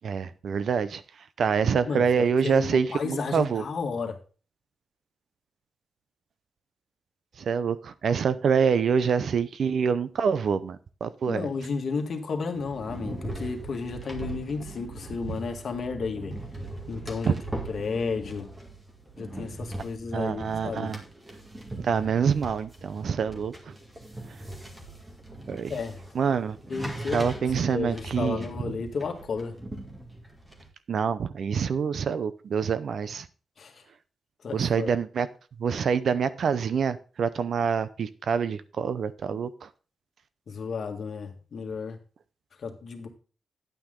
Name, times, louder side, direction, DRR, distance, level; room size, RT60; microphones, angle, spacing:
voice 1, 0.0-1.0 1.4-3.6 7.4-11.5 17.2-17.3 20.1-21.0 21.7-23.7 24.3-24.4 25.5-25.7 26.1-26.6 27.1-28.4 30.9-33.3 34.5-35.3 35.6-39.7, right 6 dB, 60° right, 14 dB, 0.7 m, -26 dB
voice 2, 1.6-4.2 11.3-16.4 16.9-17.4 17.7-18.5 19.2-20.9 25.7-26.0 26.7-27.3 27.6-29.6 33.6-33.8 34.4-34.9 39.3-39.4 40.5-42.0 42.6-43.1, left 4 dB, 55° left, 4 dB, 1.9 m, -33 dB
sound 1, 12.5-30.7, right 2 dB, 20° right, 2.0 m, -40 dB
10.0 x 8.9 x 3.8 m, 0.36 s
wide cardioid pair, 155°, 0 cm